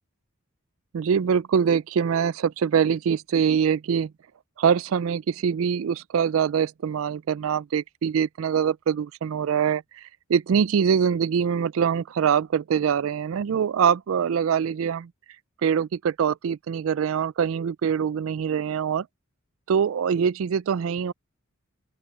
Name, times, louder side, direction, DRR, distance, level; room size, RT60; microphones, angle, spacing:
voice 1, 0.9-4.1 4.6-15.1 15.6-19.1 19.7-21.1, right 7 dB, 70° right, 0.4 m, -24 dB
open air
head